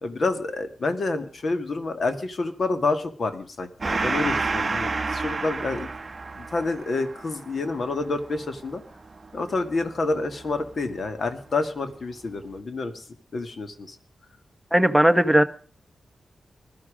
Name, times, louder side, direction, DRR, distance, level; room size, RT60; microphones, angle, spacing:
voice 1, 0.0-5.9 6.3-8.8 9.3-13.0 13.3-14.0, left 3 dB, 50° left, 8 dB, 2.0 m, -28 dB
Gong, 3.8-10.8, right 3 dB, 35° right, 0.8 m, -30 dB
voice 2, 14.7-15.4, right 1 dB, 5° right, 8 dB, 1.0 m, -17 dB
20.5 x 12.5 x 5.0 m, 0.43 s
wide cardioid pair, 140°, 0 cm